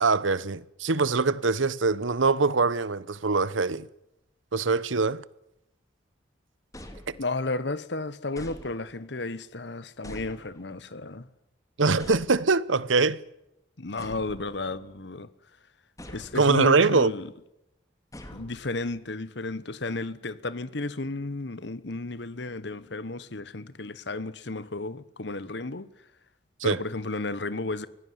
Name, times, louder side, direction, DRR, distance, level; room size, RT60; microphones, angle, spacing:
voice 1, 0.0-3.9 4.5-5.2 7.1-7.2 11.8-13.2 16.3-17.1 26.6-26.8, right 4 dB, 90° right, 1.0 m, -23 dB
sound 1, 6.7-7.6 8.4-9.2 10.0-10.9 12.0-12.8 14.0-15.0 16.0-16.8 18.1-19.0, left 1 dB, 15° left, 2.6 m, -46 dB
voice 2, 7.2-11.3 13.8-15.3 16.1-17.3 18.3-25.9 26.6-27.9, left 2 dB, 65° left, 1.2 m, -33 dB
24.5 x 17.5 x 9.5 m
head